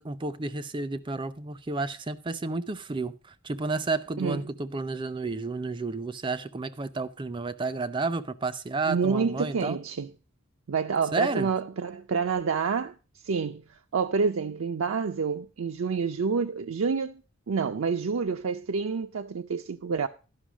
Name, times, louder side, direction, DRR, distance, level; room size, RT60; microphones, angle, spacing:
voice 1, 0.0-9.8 11.1-11.5, right 3 dB, 25° right, 0.5 m, -31 dB
voice 2, 8.9-10.1 10.7-12.9 13.2-13.6 13.9-17.2 17.5-20.1, right 5 dB, 80° right, 0.5 m, -28 dB
11.5 x 5.4 x 6.1 m
head